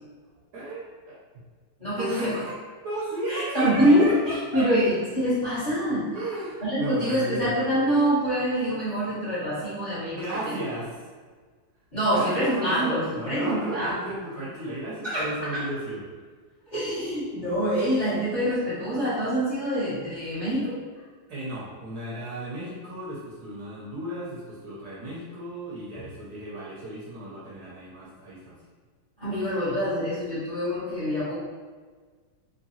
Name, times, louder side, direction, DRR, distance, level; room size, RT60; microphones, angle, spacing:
voice 1, 0.5-1.4 2.0-2.6 2.8-4.7 6.1-7.5 10.1-11.0 12.1-16.0 21.3-28.5, right 1 dB, 65° right, -7 dB, 1.2 m, -35 dB
voice 2, 1.8-2.4 3.3-6.1 6.6-10.5 11.9-14.0 15.0-15.3 15.5-15.6 16.7-20.8 29.2-31.3, equal, 25° left, -11 dB, 1.1 m, -25 dB
3.8 x 3.1 x 2.8 m, 1.5 s
omnidirectional pair, 2.3 m